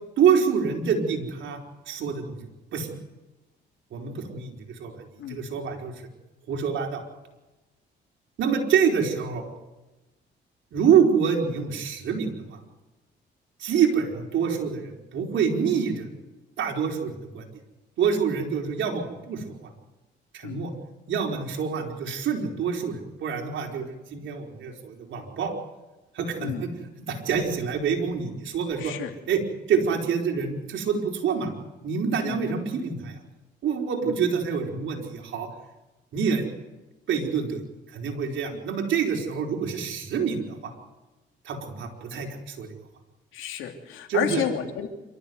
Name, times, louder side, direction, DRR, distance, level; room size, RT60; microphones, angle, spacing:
voice 1, 0.2-1.6 1.9-2.5 2.7-2.9 3.9-5.0 5.3-5.9 6.5-7.0 8.4-9.5 10.7-12.6 13.6-16.1 16.6-17.5 18.0-19.7 20.3-20.7 21.1-25.6 26.1-26.7 27.0-29.0 29.3-31.5 31.8-33.2 33.6-35.5 36.1-36.4 37.1-37.6 37.9-40.7 41.4-42.7 44.1-44.4, right 6 dB, 75° right, 2 dB, 4.7 m, -26 dB
voice 2, 28.8-29.1 32.2-32.4 34.0-34.1 38.5-38.6 43.3-44.9, left 9 dB, 90° left, 5 dB, 3.0 m, -31 dB
27.0 x 13.5 x 9.5 m, 1.1 s
cardioid pair, 90°, 20 cm